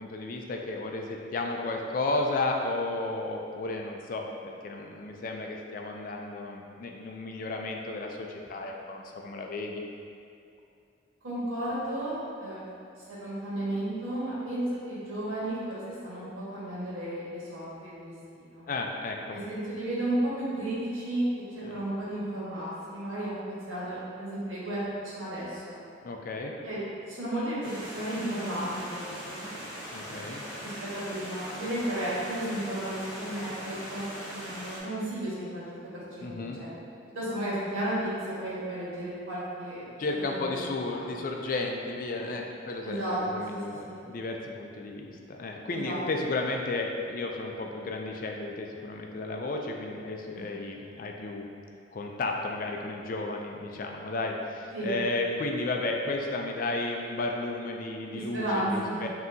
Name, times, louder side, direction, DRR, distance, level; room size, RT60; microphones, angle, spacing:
voice 1, 0.0-9.8 18.7-19.4 21.6-21.8 26.0-26.5 29.9-30.4 36.2-36.6 40.0-51.5 51.9-59.1, left 2 dB, 45° left, 1 dB, 0.3 m, -33 dB
voice 2, 11.2-12.6 13.1-18.6 19.3-21.2 21.5-25.8 26.6-26.8 27.1-29.5 30.6-36.7 37.1-39.8 40.4-40.6 40.9-41.1 42.8-43.2 43.5-44.0 45.7-46.0 50.3-50.5 54.7-54.9 58.1-59.0, right 1 dB, 90° right, -9 dB, 1.4 m, -33 dB
Stream, 27.6-34.8, equal, 15° right, 1.2 m, -40 dB
5.4 x 2.8 x 2.6 m, 2.5 s
head